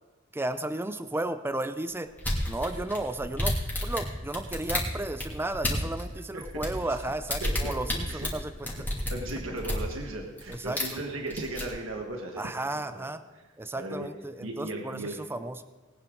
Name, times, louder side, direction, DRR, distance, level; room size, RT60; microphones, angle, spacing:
voice 1, 0.3-2.1 2.5-8.5 10.5-10.8 12.4-13.2 13.6-15.6, right 2 dB, 10° right, 10 dB, 0.5 m, -33 dB
sound 1, 2.2-6.0 6.4-9.9 10.4-11.0 11.3-11.7, left 1 dB, 10° left, 2.8 m, -31 dB
voice 2, 7.4-7.7 8.0-8.3 8.6-8.8 9.1-12.4 12.7-13.1 13.3-13.4 13.7-14.1 14.4-15.2, right 2 dB, 70° right, 1 dB, 1.6 m, -37 dB
20.0 x 9.5 x 3.9 m, 1.3 s
head